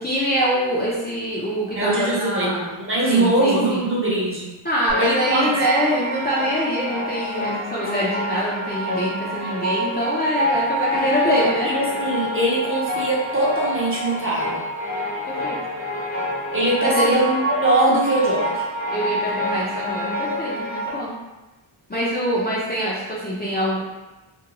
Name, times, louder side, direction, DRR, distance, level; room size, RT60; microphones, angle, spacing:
voice 1, 0.0-2.7 3.1-3.8 4.6-11.7 15.4-15.6 16.8-17.2 18.9-21.2 21.9-23.8, equal, 20° left, -8 dB, 0.5 m, -24 dB
voice 2, 1.7-2.5 2.9-4.5 5.0-5.6 11.0-14.6 16.5-18.6, right 1 dB, 25° right, -6 dB, 0.7 m, -22 dB
sound 1, 4.9-20.9, equal, 70° left, 1.0 m, -27 dB
2.5 x 2.2 x 2.9 m, 1.1 s
wide cardioid pair, 95°, 49 cm